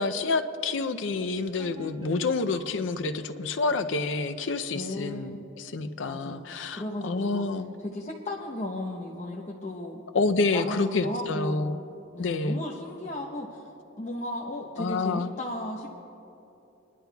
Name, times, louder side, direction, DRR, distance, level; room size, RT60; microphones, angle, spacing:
voice 1, 0.0-7.7 10.1-11.8 12.2-12.6 14.8-15.3, left 3 dB, 70° left, 9 dB, 0.5 m, -28 dB
sound 1, 1.6-5.2, right 2 dB, 30° right, 2.7 m, -48 dB
voice 2, 4.7-5.4 6.1-7.4 7.8-10.0 10.5-11.7 12.1-13.6 14.0-16.0, left 1 dB, 40° left, -2 dB, 0.8 m, -35 dB
28.0 x 11.0 x 2.3 m, 2.9 s
head